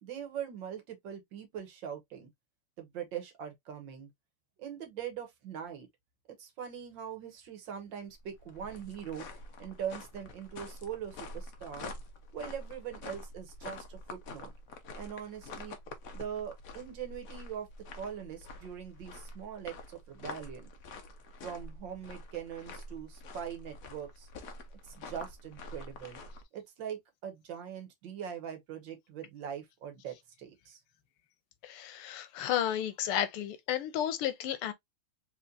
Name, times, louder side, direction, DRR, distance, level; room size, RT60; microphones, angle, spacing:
voice 1, 0.0-2.3 2.8-4.1 4.6-5.9 6.4-9.3 9.6-11.9 12.3-14.5 15.0-15.8 16.1-17.7 17.9-20.7 21.4-24.3 24.8-26.2 26.5-30.8, right 8 dB, 65° right, 1.7 m, -42 dB
sound 1, 8.1-26.4, left 2 dB, 55° left, 1.0 m, -47 dB
voice 2, 31.6-34.7, left 11 dB, 90° left, 1.7 m, -32 dB
4.5 x 3.2 x 2.5 m
omnidirectional pair, 2.3 m